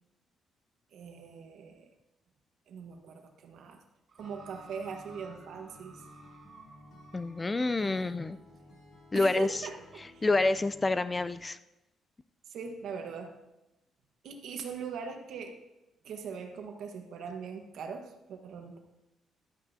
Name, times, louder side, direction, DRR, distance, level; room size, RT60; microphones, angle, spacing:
voice 1, 0.9-1.9 2.7-3.8 4.1-6.0 7.8-8.1 9.1-10.2 12.5-13.3 14.2-15.6 16.0-18.8, right 6 dB, 70° right, 4 dB, 1.2 m, -41 dB
sound 1, 4.1-7.7 8.6-8.7, right 5 dB, 50° right, 1.2 m, -55 dB
Acoustic guitar, 4.2-11.4, left 2 dB, 65° left, 2.9 m, -55 dB
voice 2, 7.1-8.4 9.1-9.5 10.2-11.6, left 2 dB, 25° left, 14 dB, 0.3 m, -27 dB
11.5 x 8.9 x 2.7 m, 0.95 s
cardioid pair, 90°, 0 cm